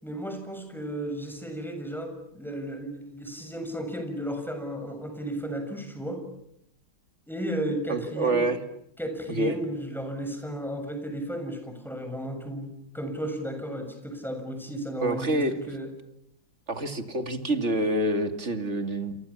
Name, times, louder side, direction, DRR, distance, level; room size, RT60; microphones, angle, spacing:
voice 1, 0.0-6.2 7.3-8.5 9.0-15.9, right 1 dB, ahead, 5 dB, 7.1 m, -34 dB
voice 2, 7.9-8.6 9.3-9.6 15.0-15.6 16.7-19.2, right 1 dB, 35° right, 8 dB, 2.6 m, -27 dB
29.0 x 28.5 x 7.3 m, 0.76 s
omnidirectional pair, 2.2 m